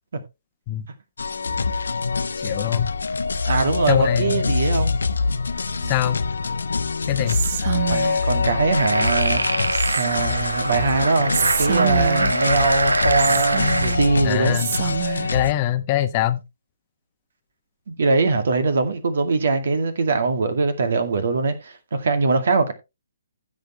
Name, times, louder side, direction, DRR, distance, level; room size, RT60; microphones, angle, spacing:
sound 1, 1.2-15.5, left 4 dB, 70° left, 0.9 m, -24 dB
voice 1, 2.4-2.9 3.9-4.4 5.8-6.2 7.1-7.4 14.2-14.7 15.3-16.4, left 12 dB, 30° left, 1.0 m, -23 dB
voice 2, 3.4-4.9 5.7-6.0 7.9-9.4 10.0-14.6 17.9-22.7, right 4 dB, 60° right, 2.3 m, -22 dB
Whispering, 7.3-8.4 9.7-10.4 11.3-12.5 13.2-14.1 14.5-15.4, right 10 dB, 40° right, 0.9 m, -27 dB
sound 2, 8.7-14.0, right 2 dB, 75° right, 1.1 m, -25 dB
15.5 x 6.6 x 3.2 m
figure-of-eight pair, 130°, 0 cm